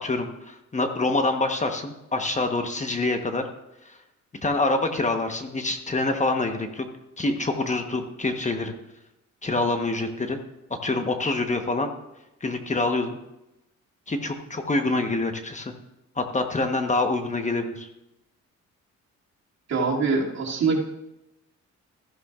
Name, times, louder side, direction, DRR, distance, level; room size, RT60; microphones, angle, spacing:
voice 1, 0.0-3.4 3.8-4.0 4.4-6.9 7.2-8.7 9.4-10.4 10.8-11.9 12.4-13.2 14.1-15.7 16.2-17.9, left 2 dB, 25° left, 5 dB, 1.1 m, -26 dB
voice 2, 19.7-20.8, right 4 dB, 60° right, -3 dB, 2.6 m, -23 dB
15.0 x 11.0 x 2.5 m, 0.91 s
cardioid pair, 90°, 30 cm